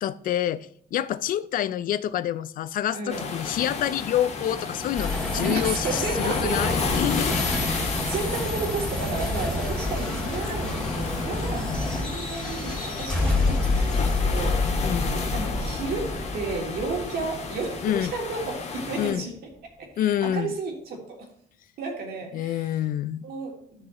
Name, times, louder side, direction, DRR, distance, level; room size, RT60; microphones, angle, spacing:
voice 1, 0.0-7.4 11.5-12.0 14.8-15.1 17.8-18.1 19.0-19.3 20.0-20.5 22.3-23.3, left 11 dB, 55° left, 16 dB, 0.4 m, -27 dB
voice 2, 2.9-3.3 5.4-6.8 7.5-19.4 19.8-21.3 21.8-22.7 23.2-23.9, right 3 dB, 65° right, 0 dB, 2.7 m, -33 dB
sound 1, 3.1-19.1, left 4 dB, 40° left, 1.6 m, -32 dB
sound 2, 5.0-18.3, left 2 dB, 5° left, 2.8 m, -28 dB
12.5 x 6.4 x 3.0 m, 0.65 s
cardioid pair, 110°, 17 cm